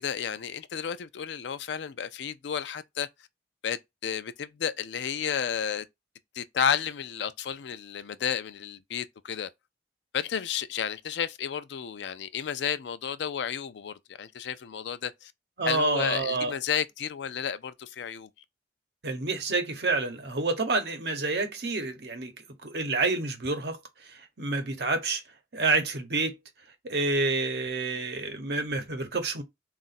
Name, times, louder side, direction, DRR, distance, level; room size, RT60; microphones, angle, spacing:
voice 1, 0.0-3.1 3.6-5.9 6.3-9.5 10.1-15.3 15.7-18.3, left 8 dB, 80° left, 0.4 m, -32 dB
voice 2, 15.6-16.5 19.0-22.3 22.6-25.2 25.5-26.4 26.8-29.4, right 3 dB, 65° right, 0.9 m, -28 dB
3.8 x 2.5 x 4.1 m
head